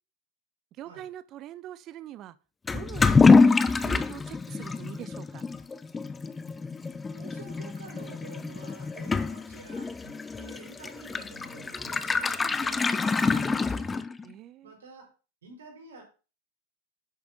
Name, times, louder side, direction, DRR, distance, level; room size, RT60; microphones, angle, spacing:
voice 1, 0.8-2.3 2.7-5.4 14.2-14.7, right 12 dB, 35° right, 0.7 m, -43 dB
Toilet flush / Liquid, 2.7-14.3, left 4 dB, 15° left, 0.6 m, -25 dB
voice 2, 7.1-13.9 14.6-15.1 15.4-16.0, right 3 dB, 65° right, 4.3 m, -48 dB
10.5 x 7.0 x 3.9 m
figure-of-eight pair, 90°, 0 cm